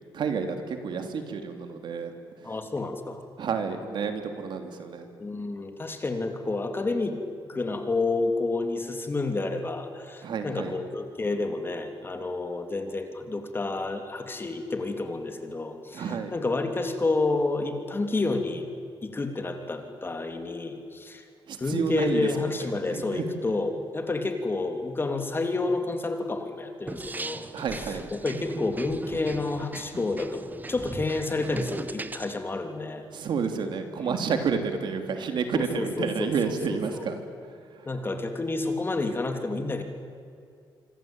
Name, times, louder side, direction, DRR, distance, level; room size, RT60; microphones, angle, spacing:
voice 1, 0.1-2.6 3.4-5.1 10.2-10.7 15.9-16.3 21.5-22.5 22.9-23.3 27.5-28.0 33.1-37.9, right 5 dB, 65° right, 6 dB, 3.1 m, -30 dB
voice 2, 2.4-3.2 5.2-7.2 7.5-18.7 19.0-21.3 21.6-27.5 28.1-33.1 34.3-34.4 35.5-37.0 37.9-39.8, left 3 dB, 25° left, 6 dB, 3.1 m, -30 dB
sound 1, 26.9-32.3, right 3 dB, 20° right, 1.1 m, -38 dB
26.0 x 25.0 x 9.0 m, 2.3 s
cardioid pair, 100°, 8 cm